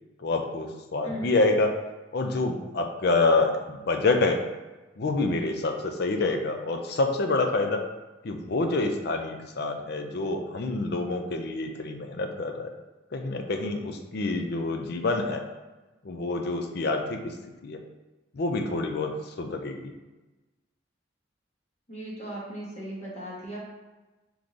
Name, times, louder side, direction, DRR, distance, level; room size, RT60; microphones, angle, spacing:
voice 1, 0.2-1.7 2.1-4.4 5.0-7.8 8.2-12.7 13.1-15.4 16.0-17.3 17.6-17.8 18.3-19.9, left 3 dB, 60° left, 4 dB, 0.5 m, -27 dB
voice 2, 1.0-1.4 21.9-23.6, right 1 dB, 35° left, -5 dB, 1.1 m, -37 dB
3.7 x 3.1 x 3.8 m, 1.1 s
head